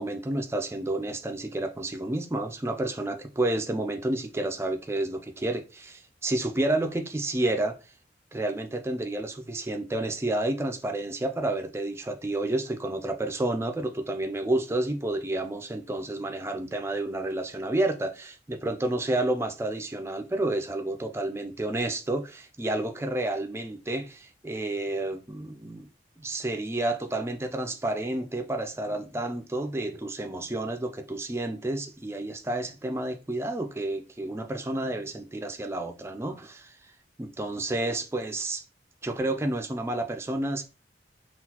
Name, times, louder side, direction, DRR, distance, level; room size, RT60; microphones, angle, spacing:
voice 1, 0.0-7.7 8.3-25.9 26.2-36.8 37.2-38.6 39.0-40.6, right 2 dB, 15° right, 0.3 m, -30 dB
3.8 x 2.3 x 2.8 m
head